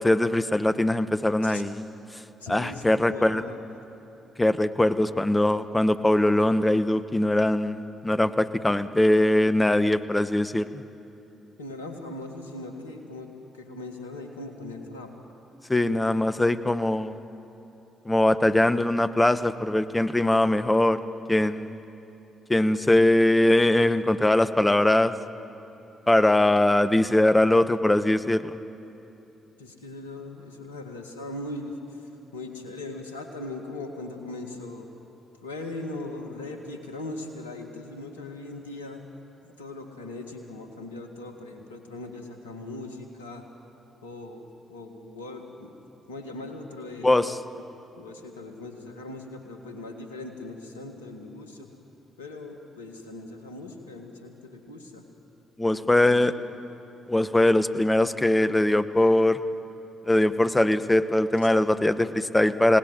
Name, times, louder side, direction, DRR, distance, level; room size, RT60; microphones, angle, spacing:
voice 1, 0.0-1.8 2.5-3.4 4.4-10.8 15.7-17.2 18.0-21.0 21.3-21.8 22.5-25.1 26.1-28.6 47.0-47.4 55.6-56.3 57.1-59.4 60.1-62.8, left 1 dB, 15° left, 12 dB, 1.2 m, -21 dB
voice 2, 2.4-3.8 11.6-15.1 29.6-34.9 35.4-39.1 39.4-43.5 44.0-45.7 46.1-47.3 48.0-51.7 52.2-55.0 55.7-56.6 61.4-61.5, left 2 dB, 85° left, 5 dB, 1.9 m, -39 dB
28.5 x 18.5 x 9.2 m, 2.9 s
figure-of-eight pair, 40°, 0 cm